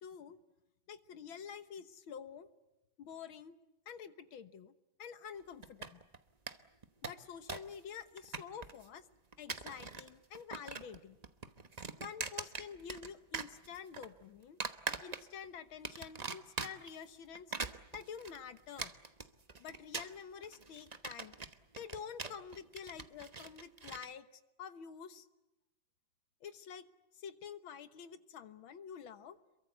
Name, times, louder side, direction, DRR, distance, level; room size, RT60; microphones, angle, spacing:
voice 1, 0.0-0.4 0.9-2.5 3.0-3.6 3.9-4.7 5.0-6.0 7.0-9.0 9.4-11.2 12.0-14.6 15.0-17.5 17.9-18.9 19.6-21.3 21.8-24.3 24.6-25.3 26.4-26.9 27.1-29.4, left 7 dB, 90° left, 11 dB, 2.0 m, -48 dB
sound 1, 5.6-6.2 6.5-6.6 6.8-7.8 8.0-8.9 9.3-10.1 10.4-11.0 11.2-13.1 13.3-14.1 14.6-15.5 15.8-17.0 17.4-24.1, right 4 dB, 30° right, 0.8 m, -42 dB
27.5 x 23.0 x 8.1 m, 0.99 s
omnidirectional pair, 2.2 m